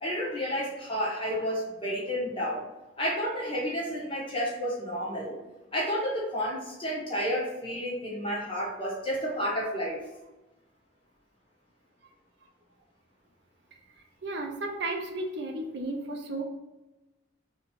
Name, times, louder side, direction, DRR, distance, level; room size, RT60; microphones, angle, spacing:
voice 1, 0.0-2.7 3.0-5.3 5.7-10.0, equal, 25° left, -5 dB, 1.2 m, -31 dB
voice 2, 14.2-16.4, right 2 dB, 60° right, 3 dB, 0.5 m, -33 dB
3.6 x 3.0 x 3.6 m, 1.0 s
head